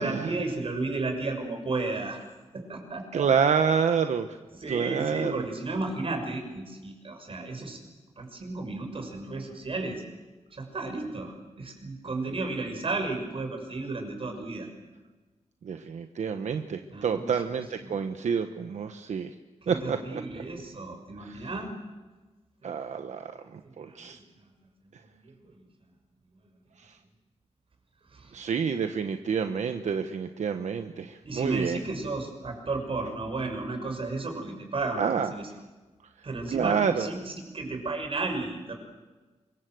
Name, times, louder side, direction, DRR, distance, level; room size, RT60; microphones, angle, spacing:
voice 1, 0.0-2.2 2.5-3.2 4.5-7.8 8.2-10.0 10.5-14.7 16.9-18.0 19.6-21.7 22.6-22.8 23.6-24.2 25.1-25.6 28.1-28.4 31.2-35.1 35.3-35.5 36.2-38.8, right 3 dB, 50° right, 5 dB, 6.2 m, -33 dB
voice 2, 3.1-4.4 4.7-5.4 15.6-19.3 19.7-20.2 21.2-21.5 22.6-23.3 23.8-24.2 26.8-26.9 28.3-31.8 35.0-35.3 36.5-37.1, right 6 dB, 80° right, 7 dB, 1.2 m, -28 dB
25.5 x 22.5 x 7.8 m, 1.2 s
wide cardioid pair, 95°, 12 cm